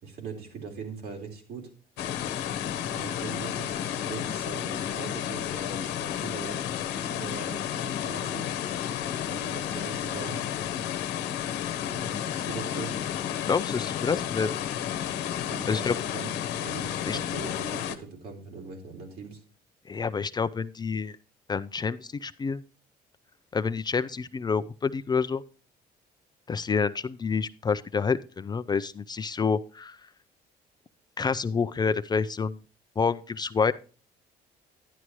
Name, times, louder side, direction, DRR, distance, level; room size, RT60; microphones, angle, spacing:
voice 1, 0.0-1.7 2.9-6.6 6.9-8.5 9.3-10.4 11.9-12.9 15.4-16.3 16.6-19.4, right 5 dB, 70° right, 2 dB, 3.7 m, -41 dB
sound 1, 2.0-18.0, left 10 dB, 85° left, 1.0 m, -32 dB
voice 2, 13.5-14.5 15.7-15.9 17.1-17.2 19.9-21.2 21.5-22.6 23.5-25.4 26.5-30.0 31.2-32.6 33.0-33.7, left 5 dB, 25° left, 13 dB, 0.4 m, -28 dB
11.0 x 9.9 x 3.1 m, 0.38 s
cardioid pair, 110°, 17 cm